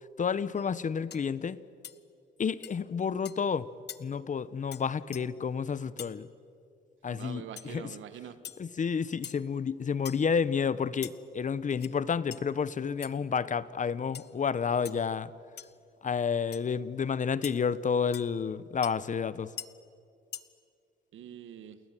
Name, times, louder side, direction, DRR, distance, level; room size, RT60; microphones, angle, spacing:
voice 1, 0.2-1.6 2.4-3.7 4.0-6.3 7.0-7.8 8.6-15.3 16.0-19.5, left 6 dB, 40° left, 17 dB, 1.0 m, -30 dB
sound 1, 0.6-0.7 1.1-1.3 1.8-2.0 2.6-2.7 3.2-3.4 3.9-4.0 4.7-4.8 5.1-5.2 6.0-6.1 7.6-7.7 8.4-8.6 9.2-9.5 10.1-10.3 11.0-11.1 11.7-11.9 12.3-12.4 13.0-13.1 14.1-14.3 14.8-15.0 15.6-15.7 16.5-16.6 17.4-17.6 18.1-18.2 18.8-18.9 19.6-19.7 20.3-20.4, left 9 dB, 60° left, 1.2 m, -43 dB
voice 2, 7.1-8.4 21.1-21.8, right 9 dB, 75° right, 11 dB, 1.8 m, -44 dB
29.5 x 20.0 x 9.2 m, 2.4 s
cardioid pair, 90°, 20 cm